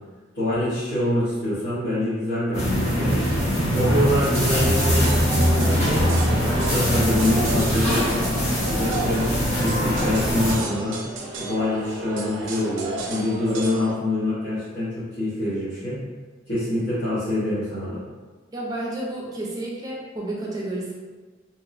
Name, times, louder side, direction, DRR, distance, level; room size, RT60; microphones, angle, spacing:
voice 1, 0.3-3.2 3.6-6.2 6.5-8.2 8.7-11.0 11.4-16.0 16.5-18.0, left 1 dB, 75° left, -15 dB, 1.0 m, -25 dB
sound 1, 2.5-10.6, equal, 35° left, 0.8 m, -22 dB
sound 2, 4.2-14.0, right 2 dB, 75° right, 0.4 m, -32 dB
voice 2, 18.5-20.9, right 1 dB, 20° right, -4 dB, 0.5 m, -31 dB
2.9 x 2.1 x 2.5 m, 1.4 s
head